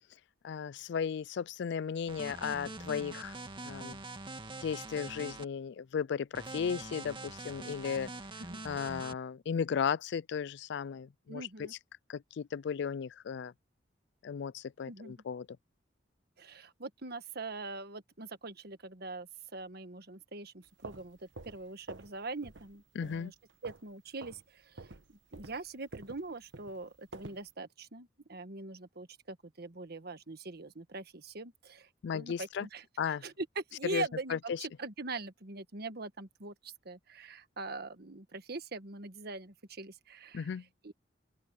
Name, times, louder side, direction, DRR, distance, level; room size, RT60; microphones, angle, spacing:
voice 1, 0.4-3.4 3.6-4.0 4.6-8.1 8.6-11.5 12.1-13.5 14.2-15.5 22.9-23.3 32.0-32.7 33.0-33.2 33.8-34.0 34.3-34.6 40.3-40.6, left 7 dB, 65° left, 0.4 m, -35 dB
sound 1, 2.1-5.4 6.3-9.1, right 2 dB, 25° right, 2.3 m, -44 dB
voice 2, 11.3-11.7 14.9-15.1 16.4-23.3 23.6-32.8 33.2-40.5 40.8-40.9, right 3 dB, 55° right, 1.5 m, -43 dB
sound 2, 20.6-22.2 22.4-22.7 23.0-23.9 24.2-24.4 24.8-27.5, right 3 dB, 85° right, 1.2 m, -48 dB
open air
head